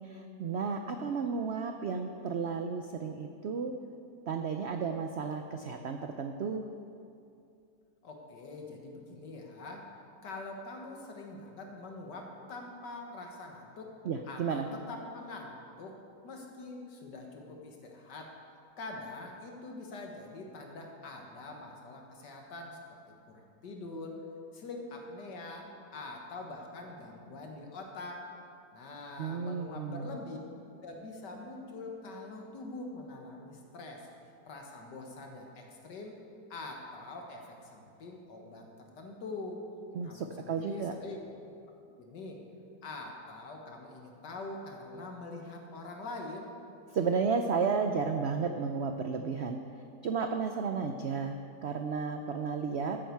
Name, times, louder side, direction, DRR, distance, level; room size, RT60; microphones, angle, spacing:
voice 1, 0.0-3.7 4.3-6.7 14.0-14.7 29.2-30.1 39.9-40.9 46.9-49.6 50.0-53.0, right 5 dB, 75° right, 6 dB, 0.6 m, -33 dB
voice 2, 8.0-9.9 10.2-13.9 14.3-16.0 16.2-18.3 18.8-23.0 23.3-24.2 24.5-28.2 28.7-30.4 30.8-34.0 34.5-36.1 36.5-38.7 39.0-39.6 40.0-41.4 42.0-42.4 42.8-46.5, left 2 dB, 80° left, 1 dB, 2.0 m, -44 dB
13.5 x 9.0 x 4.6 m, 2.5 s
omnidirectional pair, 1.8 m